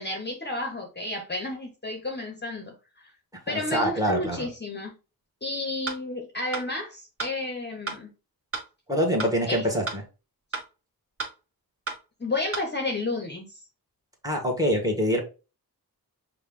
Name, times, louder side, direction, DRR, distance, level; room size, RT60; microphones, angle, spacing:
voice 1, 0.0-2.7 3.5-4.9 5.4-8.1 9.5-9.7 12.2-13.6, left 2 dB, 30° left, 2 dB, 0.8 m, -31 dB
voice 2, 3.5-4.5 8.9-10.0 14.2-15.2, equal, 10° right, 2 dB, 1.3 m, -25 dB
sound 1, 5.9-6.0 6.5-6.7 7.2-7.3 7.9-8.0 8.5-8.7 9.2-9.3 9.9-10.0 10.5-10.7 11.2-11.3 11.9-12.0 12.5-12.7, right 3 dB, 35° right, 1.2 m, -32 dB
5.5 x 2.3 x 3.6 m, 0.31 s
wide cardioid pair, 120°, 37 cm